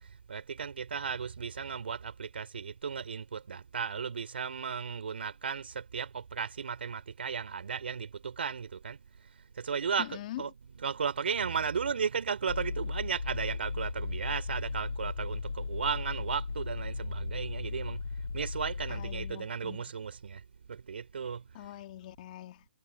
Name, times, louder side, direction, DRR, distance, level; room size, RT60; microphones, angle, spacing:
voice 1, 0.3-9.0 9.6-18.0 18.3-20.4 20.7-21.5, right 6 dB, 75° right, 3.5 m, -35 dB
voice 2, 10.0-10.5 18.9-19.8 21.5-22.7, left 14 dB, 45° left, 2.8 m, -43 dB
sound 1, 12.5-19.3, left 4 dB, 85° left, 2.4 m, -36 dB
hypercardioid pair, 130°, 6 cm